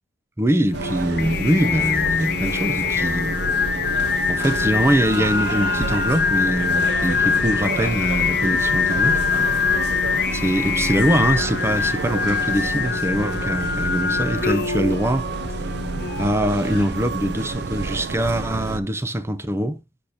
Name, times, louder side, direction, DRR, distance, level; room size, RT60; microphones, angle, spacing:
voice 1, 0.4-3.4 4.3-9.2 10.3-15.3 16.2-19.8, right 1 dB, 15° right, 0.6 m, -23 dB
Singing, 0.7-16.9, left 6 dB, 60° left, 0.6 m, -24 dB
sound 1, 0.7-18.8, right 3 dB, 65° right, 0.6 m, -29 dB
sound 2, 5.0-12.6, right 3 dB, 85° right, 2.3 m, -38 dB
8.4 x 5.0 x 2.9 m
head